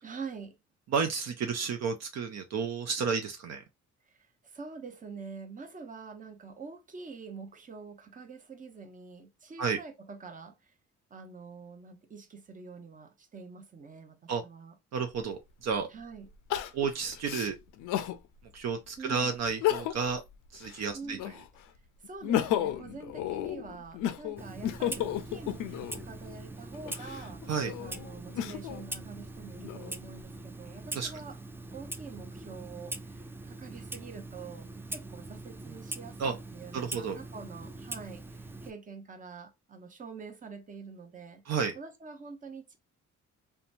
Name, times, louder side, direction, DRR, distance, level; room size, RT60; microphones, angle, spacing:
voice 1, 0.0-0.6 4.0-10.8 11.1-14.7 15.9-16.3 19.0-19.3 20.9-21.2 22.0-27.5 27.8-31.4 31.7-41.4 41.8-42.8, right 4 dB, 25° right, 0.7 m, -46 dB
voice 2, 0.9-3.6 9.6-9.8 14.3-14.4 14.9-15.9 16.7-17.6 18.5-20.2 20.5-21.2 27.5-27.7 30.7-31.1 36.2-36.3 36.7-37.2 41.5-41.8, right 5 dB, 60° right, 0.5 m, -31 dB
Crying sobbing, 15.1-15.2 16.5-18.2 18.7-18.8 19.5-20.2 20.5-21.6 22.0-26.0 26.7-28.8 29.4-30.2, left 11 dB, 85° left, 0.5 m, -33 dB
Clock, 24.4-38.7, right 2 dB, 10° right, 0.3 m, -42 dB
2.9 x 2.2 x 2.5 m
cardioid pair, 90°, 30 cm